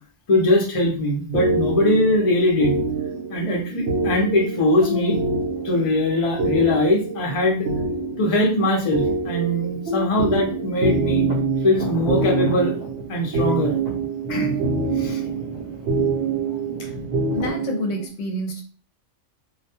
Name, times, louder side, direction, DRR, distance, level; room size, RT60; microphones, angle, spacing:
voice 1, 0.3-2.7 3.3-5.2 5.6-7.7 8.2-11.2 11.6-12.7 13.1-13.8 14.3-14.6 15.0-15.2, left 1 dB, 40° left, 0 dB, 0.5 m, -21 dB
sound 1, 1.3-18.1, right 3 dB, 65° right, 0.9 m, -25 dB
sound 2, 11.3-17.5, right 1 dB, 45° right, 0.6 m, -35 dB
voice 2, 17.3-18.6, left 1 dB, 65° left, 1 dB, 0.9 m, -28 dB
2.3 x 2.2 x 2.8 m, 0.41 s
omnidirectional pair, 1.3 m